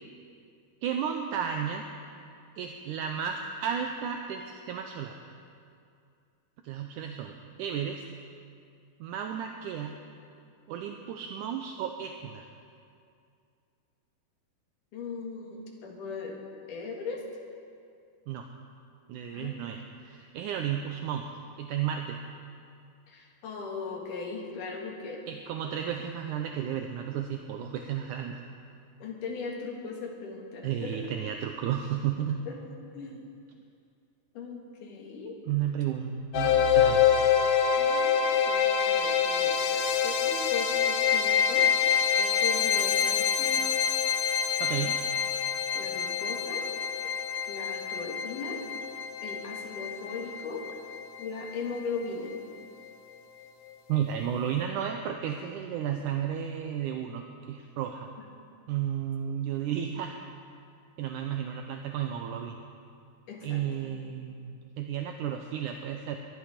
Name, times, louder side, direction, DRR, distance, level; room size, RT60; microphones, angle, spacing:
voice 1, 0.8-1.9 2.6-5.2 6.6-8.0 9.0-10.0 10.7-12.5 18.3-18.5 19.1-19.8 20.0-21.3 21.6-22.2 25.3-28.4 30.6-32.5 35.5-37.1 44.6-45.0 53.9-58.1 58.7-60.2 61.0-62.6 63.4-66.2, right 9 dB, 80° right, 4 dB, 1.8 m, -33 dB
voice 2, 14.9-16.4 16.7-17.3 19.3-19.6 23.1-25.3 29.0-31.1 32.4-33.3 34.3-35.4 37.8-38.2 38.5-43.7 45.7-46.7 47.5-48.6 49.2-50.7 51.2-52.3 63.3-63.9, left 4 dB, 60° left, 0 dB, 3.3 m, -38 dB
sound 1, 36.3-51.3, left 7 dB, 80° left, 1.6 m, -26 dB
20.5 x 11.5 x 5.1 m, 2.4 s
omnidirectional pair, 4.3 m